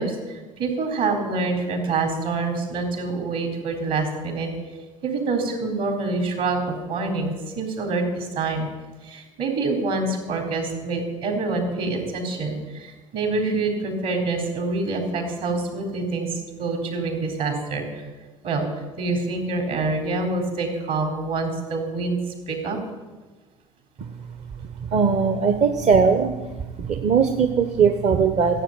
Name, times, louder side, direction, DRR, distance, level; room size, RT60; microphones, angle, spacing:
voice 1, 0.0-4.5 5.0-8.7 9.0-18.0 18.4-18.7 19.0-22.8 25.5-25.7, right 3 dB, 60° right, 3 dB, 4.0 m, -26 dB
voice 2, 24.8-26.3 26.8-28.6, right 6 dB, 40° right, 8 dB, 1.1 m, -19 dB
15.0 x 7.9 x 8.9 m, 1.3 s
hypercardioid pair, 65°, 17 cm